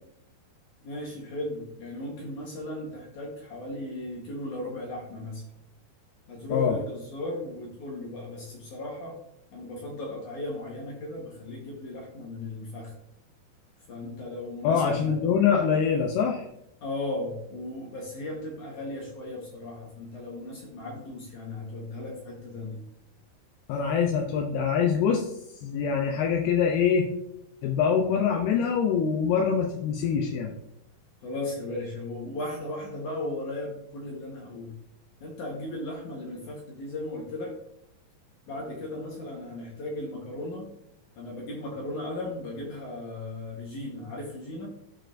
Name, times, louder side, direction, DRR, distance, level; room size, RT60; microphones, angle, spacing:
voice 1, 0.8-5.4 6.3-9.2 9.5-12.9 13.9-15.5 16.8-22.8 31.2-34.7 35.2-37.5 38.5-40.7 41.2-44.7, left 1 dB, 65° left, -2 dB, 2.2 m, -36 dB
voice 2, 14.6-16.5 23.7-25.3 25.6-27.1 27.6-30.5, left 7 dB, 80° left, 1 dB, 2.6 m, -24 dB
12.5 x 4.4 x 2.5 m, 0.78 s
omnidirectional pair, 4.7 m